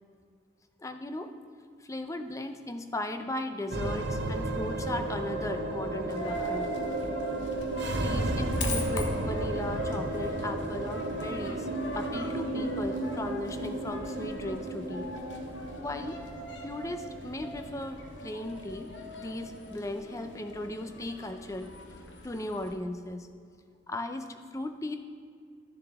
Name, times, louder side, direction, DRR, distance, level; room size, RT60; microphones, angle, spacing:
voice 1, 0.8-1.3 1.8-6.7 8.0-11.7 11.9-15.1 15.8-16.2 16.6-21.7 22.2-23.3 23.9-25.0, left 1 dB, 15° left, 8 dB, 0.4 m, -37 dB
sound 1, 3.7-22.2, right 1 dB, 65° right, 0.7 m, -34 dB
Coin (dropping), 6.1-22.7, equal, 70° left, 1.1 m, -42 dB
12.5 x 7.0 x 3.5 m, 2.2 s
head